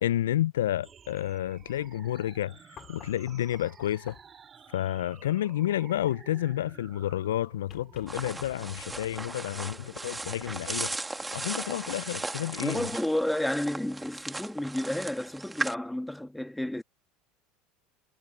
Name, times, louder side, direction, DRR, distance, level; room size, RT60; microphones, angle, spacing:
voice 1, 0.0-2.5 2.9-4.1 4.7-10.9 11.3-12.9, left 12 dB, 85° left, 0.3 m, -30 dB
sound 1, 0.8-10.8, right 7 dB, 35° right, 5.1 m, -53 dB
sound 2, 2.8-4.5 7.7-9.4 11.0-11.1, left 10 dB, 45° left, 4.0 m, -52 dB
sound 3, 8.1-15.7, right 2 dB, 10° right, 2.1 m, -37 dB
voice 2, 12.6-16.8, left 1 dB, 5° left, 1.9 m, -31 dB
hypercardioid pair, 85°, 0 cm